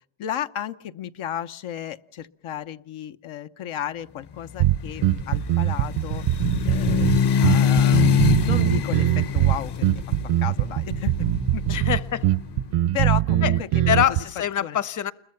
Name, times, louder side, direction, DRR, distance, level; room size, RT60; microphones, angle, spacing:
voice 1, 0.2-6.2 6.6-9.9 10.4-11.1 11.5-11.9 12.9-14.2 14.6-14.8, left 10 dB, 75° left, 1.0 m, -33 dB
sound 1, 4.5-12.5, left 8 dB, 55° left, 1.1 m, -24 dB
sound 2, 4.6-14.2, right 14 dB, 90° right, 1.0 m, -22 dB
voice 2, 11.7-12.2 13.4-13.5 13.9-15.1, left 10 dB, 35° left, 0.9 m, -24 dB
29.0 x 22.0 x 5.8 m
cardioid pair, 100°, 50 cm